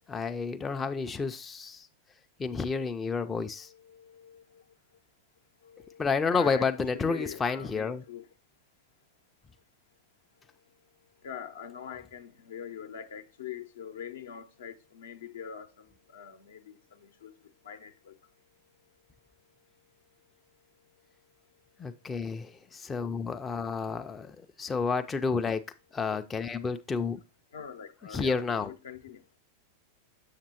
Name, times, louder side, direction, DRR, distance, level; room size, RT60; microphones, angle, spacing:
voice 1, 0.1-1.9 2.4-3.7 6.0-8.0 21.8-25.6 25.9-27.2 28.1-28.7, left 5 dB, 15° left, 0.4 m, -30 dB
voice 2, 3.5-4.6 5.6-8.3 11.2-17.3 17.6-18.1 27.5-29.2, left 8 dB, 65° left, 0.7 m, -43 dB
7.1 x 6.6 x 2.8 m
figure-of-eight pair, 90°, 0 cm